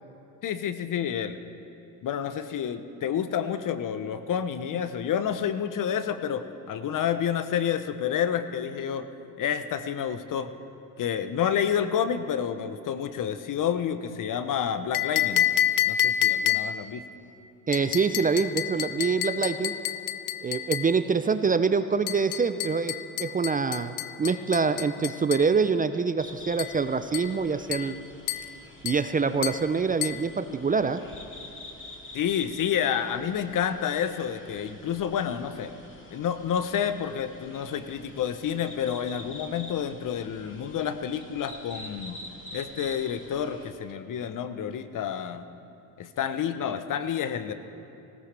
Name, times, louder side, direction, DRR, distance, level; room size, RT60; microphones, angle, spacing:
voice 1, 0.4-1.4 2.0-9.1 9.4-10.5 11.0-15.5 15.9-17.0 32.1-35.7 36.1-42.2 42.5-45.4 46.0-47.5, left 8 dB, 45° left, 11 dB, 1.0 m, -29 dB
sound 1, 14.9-16.9 17.7-21.0 22.1-25.5 26.6-26.8 27.1-27.4 27.7-28.0 28.3-28.5 28.9-29.1 29.4-29.7 30.0-30.3, left 11 dB, 85° left, 0.6 m, -29 dB
voice 2, 17.7-19.7 20.4-28.0 28.8-31.0, right 5 dB, 20° right, 10 dB, 0.5 m, -25 dB
sound 2, 26.2-43.7, left 1 dB, 25° left, 2.4 m, -47 dB
19.0 x 17.0 x 3.4 m, 2.9 s
hypercardioid pair, 65°, 43 cm